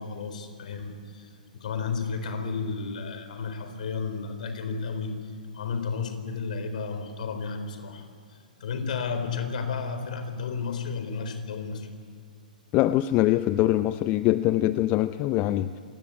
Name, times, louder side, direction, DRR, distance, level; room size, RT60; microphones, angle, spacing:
voice 1, 0.0-11.9, left 5 dB, 60° left, 8 dB, 4.1 m, -33 dB
voice 2, 12.7-15.7, left 15 dB, 30° left, 13 dB, 0.6 m, -23 dB
27.0 x 17.0 x 8.7 m, 2.2 s
figure-of-eight pair, 115°, 5 cm